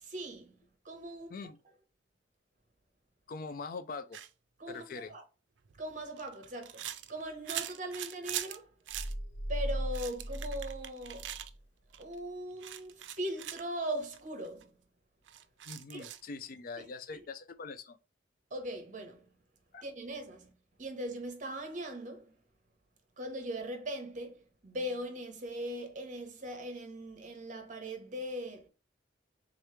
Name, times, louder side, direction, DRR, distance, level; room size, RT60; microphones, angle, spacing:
voice 1, 0.0-0.6 0.8-1.4 4.6-5.2 5.8-6.8 7.1-8.7 9.5-11.3 12.0-14.7 15.9-16.0 17.1-17.2 18.5-19.2 19.8-20.5 20.8-22.3 23.2-28.7, right 1 dB, 45° right, 1.0 m, -40 dB
voice 2, 3.3-4.2 4.7-5.1 15.7-18.0 19.7-19.9, left 4 dB, 50° left, 0.4 m, -43 dB
sound 1, 4.1-4.3 5.6-8.6 8.9-9.1 9.7-11.5 11.9-12.2 12.6-13.6 14.1-14.2 14.4-14.6 15.3-16.3, right 12 dB, 75° right, 0.4 m, -42 dB
sound 2, 8.9-11.6, equal, 75° left, 0.8 m, -37 dB
3.7 x 3.1 x 3.2 m
head